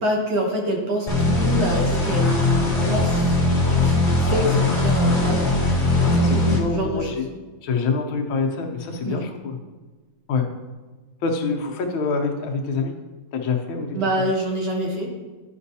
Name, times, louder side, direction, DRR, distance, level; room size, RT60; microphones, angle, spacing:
voice 1, 0.0-3.3 3.8-5.5 6.7-7.2 9.0-9.3 13.9-15.1, right 1 dB, 60° right, 0 dB, 1.6 m, -26 dB
sound 1, 1.1-6.6, left 2 dB, 25° left, 1.4 m, -20 dB
voice 2, 4.2-4.6 6.1-7.2 7.6-9.6 10.3-10.5 11.2-12.9 13.3-14.0, left 4 dB, 80° left, 3 dB, 1.6 m, -26 dB
10.5 x 5.3 x 2.8 m, 1.3 s
omnidirectional pair, 2.2 m